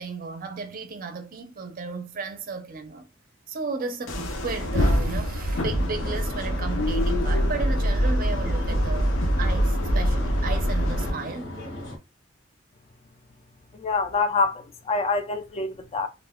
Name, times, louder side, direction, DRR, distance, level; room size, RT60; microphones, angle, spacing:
voice 1, 0.0-3.1 3.5-9.1 9.4-11.6, right 4 dB, 45° right, 0.5 m, -34 dB
sound 1, 4.1-11.1, equal, 90° left, 0.6 m, -24 dB
sound 2, 5.5-12.0, left 1 dB, 65° left, 1.0 m, -37 dB
voice 2, 13.7-16.1, left 4 dB, 30° left, 0.4 m, -26 dB
2.4 x 2.1 x 3.5 m
head